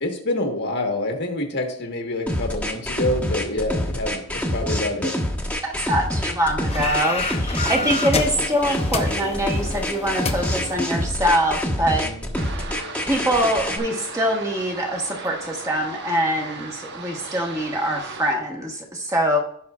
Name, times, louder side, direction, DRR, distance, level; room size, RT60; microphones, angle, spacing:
voice 1, 0.0-5.1 7.7-7.9 12.0-12.4, left 1 dB, 55° left, 3 dB, 1.4 m, -27 dB
sound 1, 2.3-13.8, equal, 5° left, 1.2 m, -26 dB
voice 2, 5.6-12.1 13.1-19.4, equal, 15° right, 1 dB, 1.2 m, -24 dB
sound 2, 6.7-11.6, left 3 dB, 30° left, 0.7 m, -30 dB
sound 3, 12.3-18.3, right 4 dB, 55° right, 1.0 m, -37 dB
16.0 x 5.6 x 2.4 m, 0.65 s
head